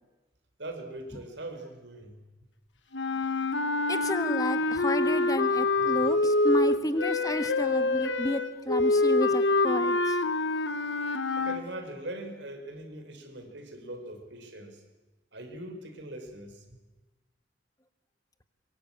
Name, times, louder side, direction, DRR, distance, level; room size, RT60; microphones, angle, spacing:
voice 1, 0.6-2.2 3.8-3.9 5.7-6.1 11.4-14.8 15.3-16.6, right 1 dB, 80° right, 6 dB, 4.6 m, -41 dB
sound 1, 2.9-11.6, left 2 dB, 90° left, 1.4 m, -26 dB
voice 2, 3.9-10.2, left 1 dB, 20° left, 9 dB, 1.5 m, -31 dB
23.5 x 23.0 x 8.8 m, 1.2 s
head